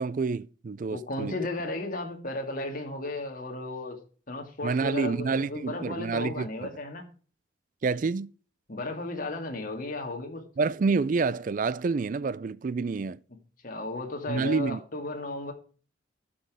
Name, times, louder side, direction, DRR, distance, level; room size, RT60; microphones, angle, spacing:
voice 1, 0.0-1.3 4.6-6.7 7.8-8.3 10.6-13.2 14.3-14.8, right 4 dB, 45° right, 0.4 m, -28 dB
voice 2, 0.9-4.0 4.3-7.1 8.7-10.4 13.6-15.5, left 2 dB, 45° left, 2.1 m, -34 dB
12.0 x 6.1 x 5.0 m
head